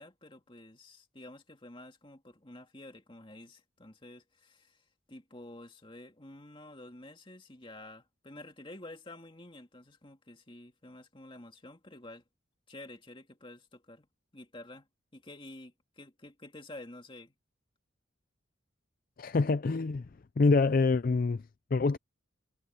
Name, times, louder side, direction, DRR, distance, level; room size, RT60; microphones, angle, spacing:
voice 1, 0.0-4.8 5.1-12.2 12.7-14.1 14.3-14.9 15.1-17.3, left 1 dB, 25° left, 2.4 m, -50 dB
voice 2, 19.2-20.1 20.4-21.4 21.7-22.0, left 3 dB, 45° left, 0.4 m, -25 dB
head